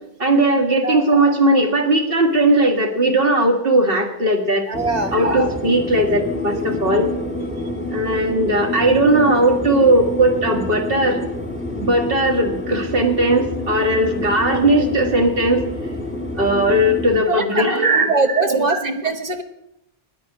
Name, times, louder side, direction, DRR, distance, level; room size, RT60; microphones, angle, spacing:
voice 1, 0.2-4.7 5.1-7.1 7.9-11.2 11.8-15.6 16.4-18.9, right 1 dB, 60° right, 3 dB, 2.0 m, -18 dB
sound 1, 4.7-17.2, left 2 dB, 10° left, 1.5 m, -28 dB
voice 2, 4.7-5.1 6.5-6.6 17.3-19.4, right 3 dB, 40° right, 7 dB, 1.1 m, -22 dB
9.5 x 9.2 x 9.0 m, 0.84 s
omnidirectional pair, 1.1 m